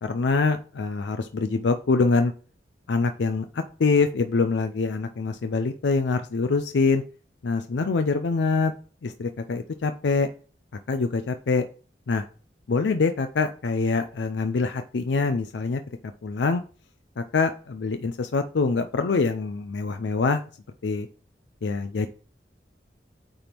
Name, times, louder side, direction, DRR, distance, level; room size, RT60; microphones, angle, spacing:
voice 1, 0.0-2.3 2.9-7.0 7.4-8.7 9.0-10.3 10.9-11.7 12.1-12.2 12.7-15.8 16.2-16.6 17.2-20.4 20.8-21.1 21.6-22.1, left 4 dB, 90° left, 8 dB, 0.5 m, -24 dB
8.9 x 3.5 x 4.5 m, 0.39 s
head